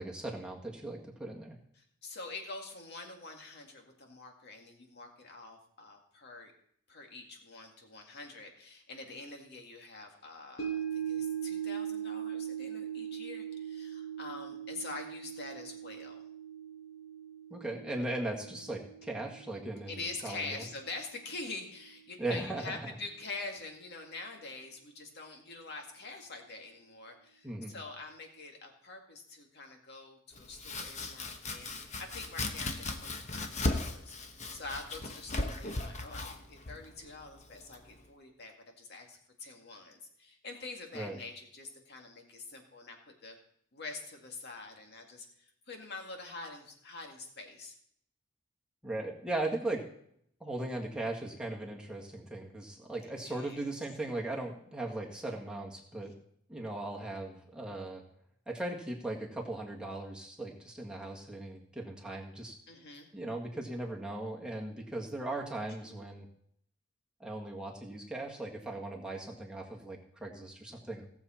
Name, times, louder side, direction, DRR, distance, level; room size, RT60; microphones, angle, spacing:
voice 1, 0.0-1.6 17.5-20.0 20.2-20.6 22.2-22.8 27.4-27.7 40.9-41.2 48.8-49.8 50.4-56.1 56.5-58.0 58.5-62.5 63.1-66.3 67.2-71.1, right 2 dB, 5° right, -1 dB, 1.8 m, -38 dB
voice 2, 1.7-6.5 6.9-16.2 19.9-34.2 34.5-43.0 43.2-43.4 43.7-47.8 53.1-53.7 62.7-63.1, left 3 dB, 55° left, 2 dB, 2.1 m, -45 dB
sound 1, 10.6-21.0 21.3-21.4, right 9 dB, 70° left, 1.7 m, -40 dB
Domestic sounds home sounds, 30.3-38.1, left 2 dB, 35° left, 1.1 m, -38 dB
17.5 x 7.2 x 4.4 m, 0.68 s
head